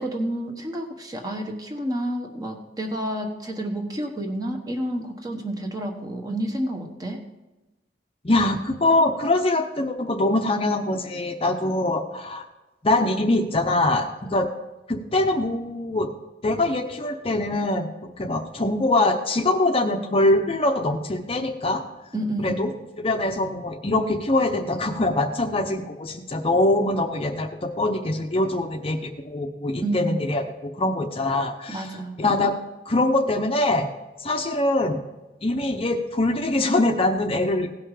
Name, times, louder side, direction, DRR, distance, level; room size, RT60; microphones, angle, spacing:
voice 1, 0.0-7.3 22.1-22.8 29.8-30.2 31.7-32.2, right 1 dB, 20° right, 3 dB, 1.2 m, -30 dB
voice 2, 8.2-12.5 12.8-14.5 14.9-16.1 16.4-21.8 22.4-22.7 23.0-31.9 32.2-32.5 32.9-33.9 34.2-35.0 35.4-37.7, left 2 dB, 35° left, 5 dB, 0.7 m, -23 dB
16.5 x 5.7 x 4.9 m, 1.1 s
head